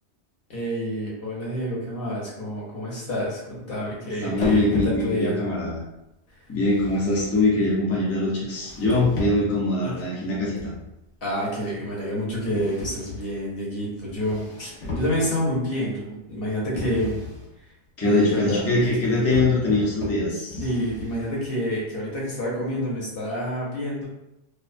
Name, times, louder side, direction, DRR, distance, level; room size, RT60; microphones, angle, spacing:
voice 1, 0.5-5.4 6.3-6.4 9.8-9.9 11.2-17.1 18.0-18.6 20.6-24.1, equal, 55° left, -5 dB, 1.0 m, -28 dB
voice 2, 4.2-5.8 6.5-10.6 18.0-20.6, left 2 dB, 20° left, -5 dB, 0.4 m, -22 dB
sound 1, 4.4-5.4 6.6-7.8 8.5-9.7 10.6-11.0 12.5-13.4 14.1-15.6 16.7-17.5 18.7-21.5, left 2 dB, 85° left, 1.0 m, -34 dB
2.4 x 2.3 x 2.5 m, 0.89 s
omnidirectional pair, 1.2 m